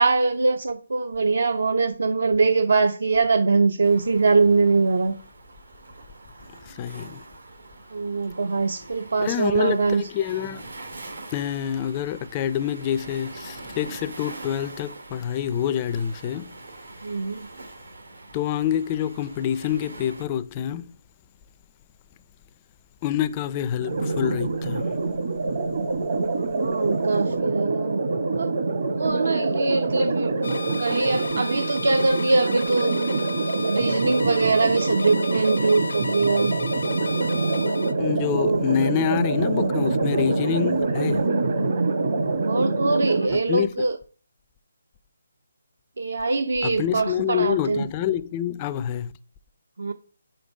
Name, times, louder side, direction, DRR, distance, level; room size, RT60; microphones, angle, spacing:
voice 1, 0.0-5.2 7.9-10.0 17.0-17.5 26.5-28.0 28.3-28.6 28.9-30.4 30.7-33.2 33.5-36.6 38.3-38.7 41.5-41.9 42.5-44.0 46.0-47.9 49.8-49.9, right 3 dB, 70° right, 0.5 m, -23 dB
Waves surf, 3.8-20.2, right 2 dB, 90° right, 2.1 m, -43 dB
voice 2, 6.7-7.2 9.2-10.7 11.3-16.5 18.3-20.9 23.0-24.9 38.0-41.3 43.3-43.9 46.6-49.1, left 10 dB, 20° left, 0.3 m, -27 dB
sound 1, 23.8-43.3, right 3 dB, 50° right, 1.0 m, -25 dB
sound 2, 30.4-37.9, left 3 dB, 80° left, 0.5 m, -34 dB
5.2 x 4.3 x 5.2 m
hypercardioid pair, 165°, 0 cm